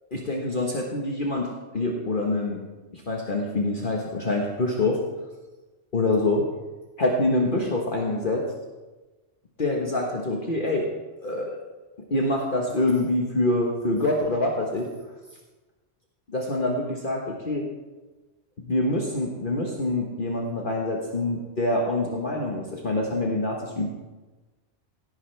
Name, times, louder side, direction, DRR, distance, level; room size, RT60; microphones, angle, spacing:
voice 1, 0.1-2.6 2.9-5.0 5.9-6.4 7.0-8.4 9.6-10.9 11.2-11.6 12.1-14.9 16.3-17.7 18.6-23.9, left 2 dB, 45° left, -1 dB, 1.4 m, -25 dB
17.0 x 10.0 x 3.3 m, 1.2 s
omnidirectional pair, 1.3 m